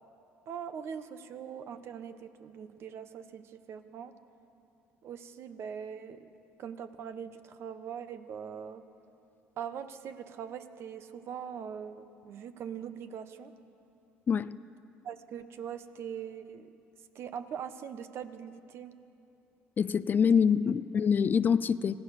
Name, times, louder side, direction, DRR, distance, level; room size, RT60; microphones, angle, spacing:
voice 1, 0.5-4.1 5.0-6.3 6.6-8.8 9.6-13.5 15.0-16.7 17.1-18.9, right 8 dB, 55° right, 10 dB, 1.2 m, -41 dB
voice 2, 19.8-22.0, left 6 dB, 40° left, 16 dB, 0.5 m, -25 dB
26.0 x 16.5 x 6.7 m, 2.8 s
supercardioid pair, 90°, 5 cm